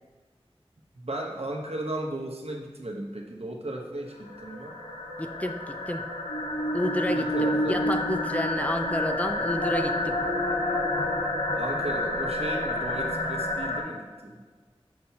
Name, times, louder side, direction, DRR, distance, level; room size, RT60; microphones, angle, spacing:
voice 1, 0.9-4.8 7.1-7.9 11.6-14.4, right 1 dB, 75° right, 0 dB, 1.0 m, -35 dB
sound 1, 4.1-13.8, left 1 dB, 80° left, 1.1 m, -29 dB
voice 2, 5.2-6.0 6.7-10.2, left 1 dB, 15° left, 6 dB, 0.5 m, -30 dB
7.4 x 5.7 x 2.9 m, 1.4 s
wide cardioid pair, 45°, 11 cm